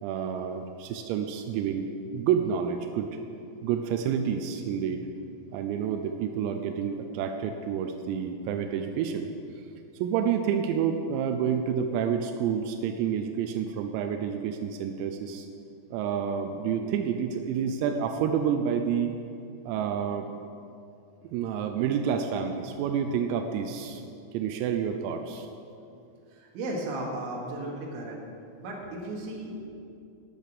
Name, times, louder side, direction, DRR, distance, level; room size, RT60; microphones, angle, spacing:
voice 1, 0.0-3.1 3.6-5.0 5.5-9.3 10.0-15.5 15.9-19.1 19.7-20.3 21.2-24.0 24.3-25.5, right 7 dB, 90° right, 6 dB, 3.5 m, -29 dB
voice 2, 26.3-28.2 28.6-29.6, right 1 dB, 70° right, -1 dB, 4.2 m, -35 dB
12.0 x 11.0 x 6.8 m, 2.6 s
omnidirectional pair, 6.0 m